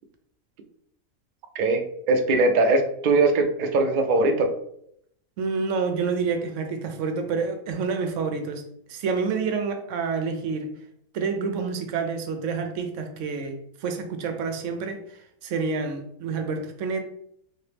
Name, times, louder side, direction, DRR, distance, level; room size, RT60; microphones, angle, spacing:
voice 1, 1.5-4.5, right 2 dB, 85° right, 5 dB, 0.4 m, -21 dB
voice 2, 5.4-8.6 8.9-10.7 11.1-15.0 15.4-17.0, right 5 dB, 65° right, 6 dB, 0.9 m, -28 dB
3.3 x 2.9 x 3.3 m, 0.71 s
omnidirectional pair, 1.5 m